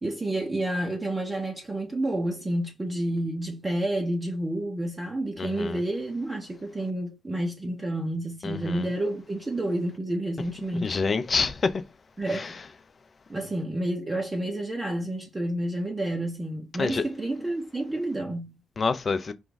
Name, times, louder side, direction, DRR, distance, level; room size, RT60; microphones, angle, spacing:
voice 1, 0.0-11.0 12.2-12.6 13.3-18.6, right 1 dB, 25° right, 1.1 m, -30 dB
voice 2, 5.4-5.8 8.4-8.9 10.8-11.8 12.3-12.5 16.8-17.0 18.8-19.3, left 4 dB, 45° left, 0.7 m, -27 dB
5.2 x 2.3 x 4.0 m
hypercardioid pair, 45°, 0 cm